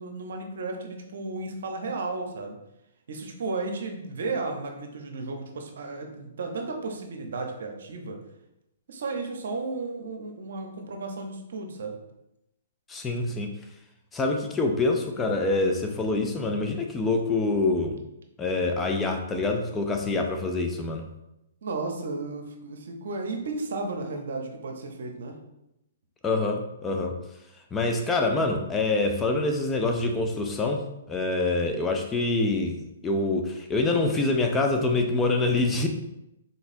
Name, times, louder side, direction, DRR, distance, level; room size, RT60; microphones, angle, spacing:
voice 1, 0.0-2.6 3.1-8.2 8.9-12.0 21.6-25.4, right 3 dB, 65° right, 3 dB, 0.8 m, -34 dB
voice 2, 12.9-13.5 14.1-18.0 18.4-21.1 26.2-27.2 27.7-32.8 33.0-35.9, left 2 dB, 15° left, 3 dB, 0.5 m, -25 dB
3.9 x 3.8 x 2.6 m, 0.86 s
hypercardioid pair, 130°, 0 cm